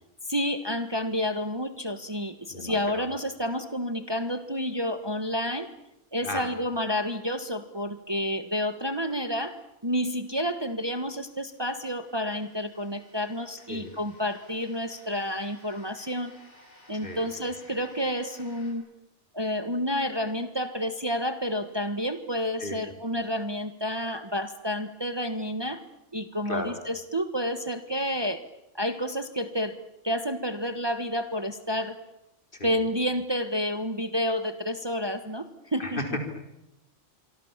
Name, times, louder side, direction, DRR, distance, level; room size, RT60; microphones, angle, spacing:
voice 1, 0.3-5.7 6.1-9.5 9.8-16.3 16.9-18.8 19.3-25.8 26.1-28.4 28.8-29.7 30.0-32.0 32.6-36.0, equal, 20° right, 9 dB, 1.5 m, -30 dB
voice 2, 2.5-3.1 6.2-6.5 13.7-13.9 17.0-17.3 22.6-22.8 26.4-26.7 32.5-32.8 35.8-36.2, left 1 dB, 50° left, 4 dB, 4.8 m, -34 dB
sound 1, 10.3-18.7, left 1 dB, 90° left, 7.1 m, -57 dB
26.5 x 24.5 x 7.4 m, 0.89 s
omnidirectional pair, 1.2 m